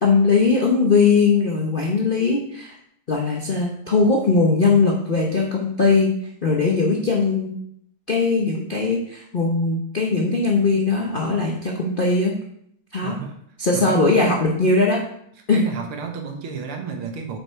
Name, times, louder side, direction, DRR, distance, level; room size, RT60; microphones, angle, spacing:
voice 1, 0.0-2.7 3.1-6.1 6.4-7.5 8.1-12.3 12.9-13.2 13.6-15.0 15.5-15.6, left 4 dB, 55° left, -2 dB, 0.5 m, -19 dB
voice 2, 13.0-13.4 13.7-14.2 15.5-17.4, right 5 dB, 90° right, 4 dB, 2.0 m, -31 dB
6.7 x 5.4 x 4.5 m, 0.69 s
omnidirectional pair, 2.3 m